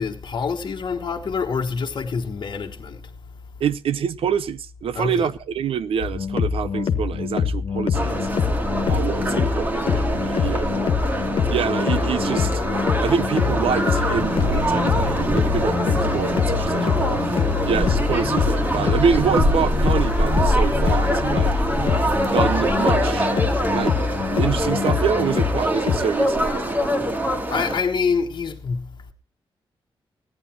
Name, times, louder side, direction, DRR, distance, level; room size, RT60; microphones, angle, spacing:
voice 1, 0.0-3.1 4.9-5.3 13.1-13.2 21.8-21.9 27.5-29.1, left 5 dB, 55° left, 1.4 m, -26 dB
voice 2, 3.6-8.3 8.9-10.9 11.5-12.6 13.0-21.5 22.3-23.3 23.7-24.0 24.3-26.9, right 7 dB, 80° right, 0.6 m, -26 dB
sound 1, 6.0-26.0, left 7 dB, 80° left, 1.3 m, -24 dB
sound 2, 7.9-27.8, right 1 dB, 20° right, 2.0 m, -24 dB
sound 3, 13.4-22.6, right 4 dB, 35° right, 1.1 m, -34 dB
15.0 x 10.0 x 4.4 m
wide cardioid pair, 105°, 9 cm